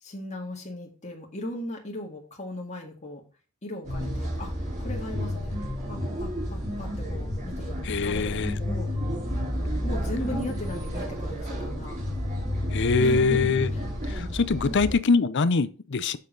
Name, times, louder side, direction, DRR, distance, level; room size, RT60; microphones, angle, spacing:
voice 1, 0.0-3.2 3.6-8.9 9.8-12.0 13.0-13.5 14.6-14.8, left 1 dB, 35° left, 1.9 m, -37 dB
sound 1, 3.8-14.9, equal, 35° right, 3.8 m, -31 dB
voice 2, 7.8-8.6 12.7-13.7 14.1-16.2, left 4 dB, 60° left, 0.6 m, -23 dB
7.3 x 6.4 x 3.9 m
head